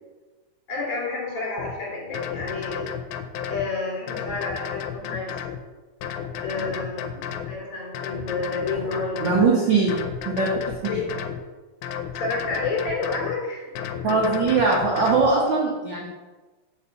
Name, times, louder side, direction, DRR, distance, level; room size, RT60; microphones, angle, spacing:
voice 1, 0.7-2.9 3.5-5.3 6.4-9.8 10.9-11.2 12.1-13.8, left 3 dB, 55° left, -4 dB, 3.9 m, -30 dB
sound 1, 1.6-1.7 2.1-3.7 4.1-5.6 6.0-7.5 7.9-9.5 9.9-11.4 11.8-13.3 13.8-15.3, left 8 dB, 85° left, 2.1 m, -32 dB
voice 2, 9.2-9.9 10.2-10.5 14.0-16.1, right 4 dB, 70° right, -2 dB, 1.1 m, -20 dB
7.3 x 4.5 x 7.0 m, 1.2 s
omnidirectional pair, 3.6 m